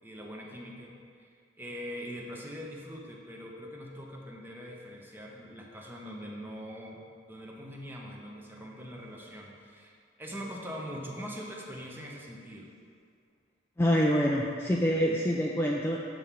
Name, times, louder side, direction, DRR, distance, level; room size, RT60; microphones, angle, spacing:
voice 1, 0.0-1.3 1.6-9.9 10.2-12.7, equal, 10° right, -1 dB, 0.9 m, -42 dB
voice 2, 13.8-16.0, equal, 10° left, -2 dB, 0.4 m, -26 dB
7.5 x 6.9 x 3.6 m, 2.3 s
head